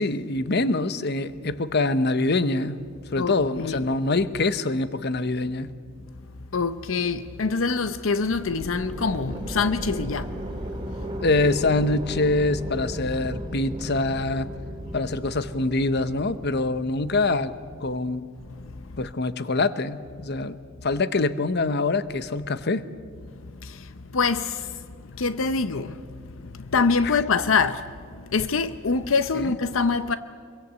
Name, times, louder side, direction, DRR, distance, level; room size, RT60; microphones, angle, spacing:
voice 1, 0.0-2.8 3.1-5.7 11.2-14.5 14.9-17.5 17.8-18.2 19.0-20.6 20.8-22.8 27.0-27.2 29.4-29.5, left 2 dB, 55° left, 0.9 m, -24 dB
voice 2, 3.2-3.9 6.5-11.1 18.4-19.0 23.3-30.2, left 4 dB, 80° left, 0.7 m, -26 dB
sound 1, 8.3-18.2, equal, 25° right, 2.6 m, -36 dB
25.5 x 23.0 x 8.3 m
head